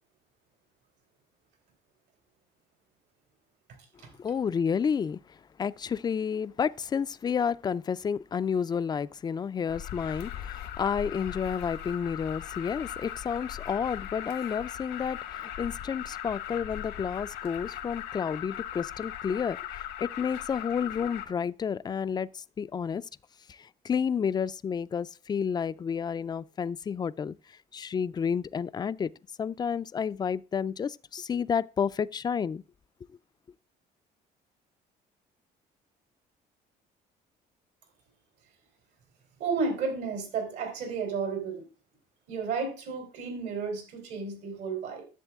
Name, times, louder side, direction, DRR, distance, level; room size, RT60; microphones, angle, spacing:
voice 1, 4.2-5.2 5.6-23.0 23.5-27.3 27.7-29.1 29.4-32.6, left 7 dB, 25° left, 0.3 m, -30 dB
Alarm, 9.7-21.2, left 11 dB, 85° left, 1.3 m, -39 dB
voice 2, 39.4-41.6 42.3-45.0, right 4 dB, 80° right, 3.6 m, -32 dB
11.0 x 7.0 x 3.5 m
cardioid pair, 110°, 17 cm